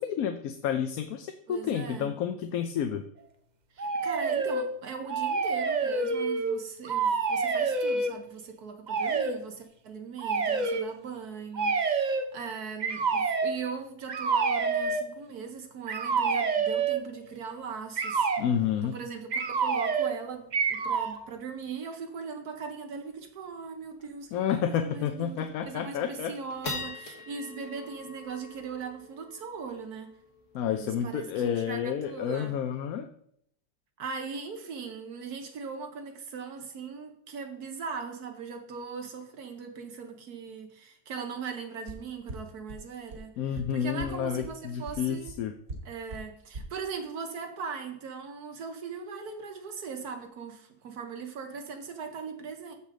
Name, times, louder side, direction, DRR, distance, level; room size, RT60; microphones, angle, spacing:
voice 1, 0.0-3.0 18.4-19.0 24.3-26.3 30.5-33.1 43.4-45.5, left 8 dB, 70° left, 7 dB, 1.0 m, -30 dB
voice 2, 1.5-2.1 3.7-18.3 18.8-24.3 24.7-30.1 30.8-32.5 34.0-45.3 45.8-52.8, right 5 dB, 80° right, 5 dB, 1.5 m, -39 dB
sound 1, 3.8-4.7 5.1-6.6 6.8-8.1 8.9-9.4 10.2-10.8 11.5-12.3 12.8-13.6 14.1-15.0 15.9-17.1 18.0-18.5 19.3-20.2 20.5-21.2, right 4 dB, 45° right, 0.6 m, -27 dB
sound 2, 23.1-23.2 23.5-23.6 24.0-24.2 24.7-24.8 25.4-25.7 26.2-32.8, left 3 dB, 55° left, 1.8 m, -44 dB
sound 3, 41.9-42.0 42.3-42.4 42.7-42.8 43.1-43.2 43.6-43.7 44.0-44.1 44.4-44.5 44.9-45.0 45.3-45.4 45.7-45.8 46.1-46.2 46.5-46.6, right 2 dB, 60° right, 2.4 m, -38 dB
14.5 x 5.0 x 3.8 m, 0.70 s
omnidirectional pair, 1.6 m